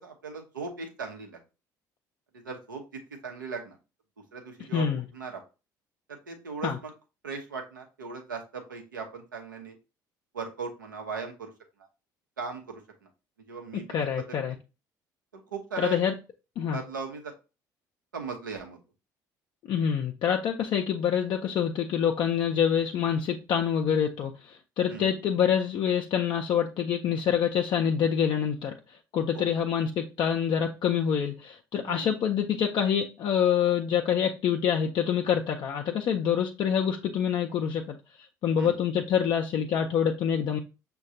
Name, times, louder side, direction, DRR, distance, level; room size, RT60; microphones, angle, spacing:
voice 1, 0.0-1.4 2.4-2.8 3.2-3.8 4.3-5.4 6.1-6.9 7.2-9.7 10.3-11.5 12.4-12.8 13.5-14.4 15.5-16.0 16.7-17.3 18.1-18.8 24.9-25.1 29.3-29.5 31.8-32.1 38.6-38.8, right 5 dB, 90° right, 0.7 m, -38 dB
voice 2, 4.7-5.0 6.6-6.8 13.7-14.5 15.8-16.1 16.6-16.8 19.7-28.8 29.1-37.9 38.4-40.6, left 8 dB, 50° left, 0.4 m, -26 dB
6.3 x 2.2 x 2.6 m
hypercardioid pair, 55°, 10 cm